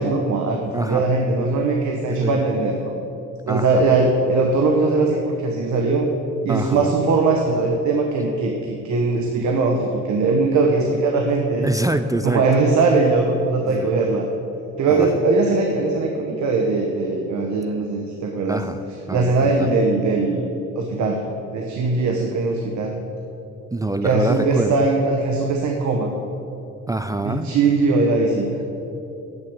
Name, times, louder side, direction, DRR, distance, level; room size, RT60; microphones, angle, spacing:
voice 1, 0.0-2.9 3.5-6.1 6.4-11.6 12.2-14.3 14.8-18.6 19.1-20.5 20.8-21.2 21.5-22.9 24.0-26.1 27.2-28.5, right 3 dB, 70° right, 2 dB, 1.2 m, -20 dB
voice 2, 0.7-1.0 2.2-2.3 3.5-4.0 6.5-6.9 11.6-12.5 13.6-13.9 14.9-15.1 18.5-18.8 19.1-19.7 23.7-24.7 26.9-27.5, right 2 dB, 10° right, 9 dB, 0.4 m, -25 dB
8.7 x 6.7 x 8.6 m, 2.9 s
cardioid pair, 90°, 30 cm